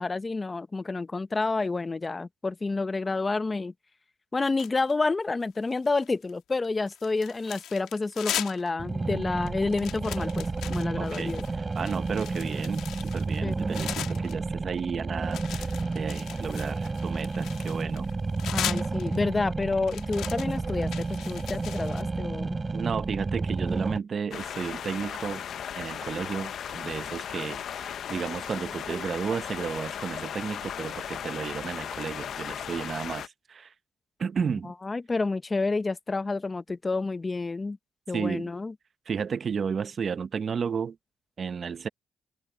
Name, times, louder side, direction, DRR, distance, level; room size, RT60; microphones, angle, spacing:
voice 1, 0.0-3.7 4.3-11.4 13.4-13.6 18.5-22.6 34.4-37.8 38.1-38.7, left 3 dB, 25° left, 1.0 m, -29 dB
sound 1, 4.6-5.1 5.6-6.3 6.6-8.7 9.0-9.1 9.5-14.3 15.3-19.3 19.9-22.0, left 11 dB, 80° left, 2.2 m, -38 dB
sound 2, 8.8-24.0, right 3 dB, 25° right, 4.1 m, -31 dB
voice 2, 10.9-11.4 11.8-18.1 22.7-25.4 25.8-33.7 34.2-34.7 38.1-38.5 39.1-41.0 41.4-41.9, right 6 dB, 45° right, 0.9 m, -33 dB
sound 3, 24.3-33.3, left 9 dB, 65° left, 0.9 m, -36 dB
cardioid pair, 90°, 0 cm